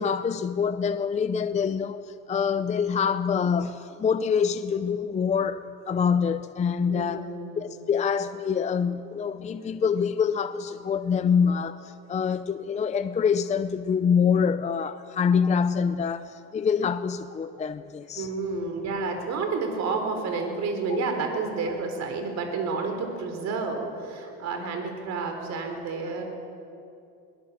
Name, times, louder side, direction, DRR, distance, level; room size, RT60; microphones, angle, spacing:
voice 1, 0.0-7.3 7.6-18.3 20.9-21.0, left 6 dB, 20° left, 0.5 m, -25 dB
voice 2, 6.8-7.6 18.2-26.2, right 4 dB, 55° right, 3.9 m, -30 dB
22.5 x 19.5 x 7.2 m
cardioid pair, 125°, 31 cm